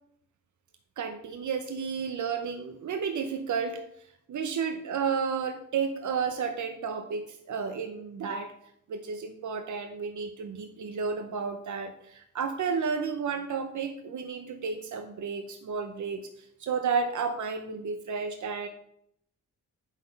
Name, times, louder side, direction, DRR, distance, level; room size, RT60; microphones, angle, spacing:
voice 1, 1.0-3.8 4.3-8.5 8.9-18.7, right 5 dB, 70° right, 7 dB, 0.9 m, -32 dB
10.0 x 6.2 x 5.3 m, 0.72 s
wide cardioid pair, 165°, 31 cm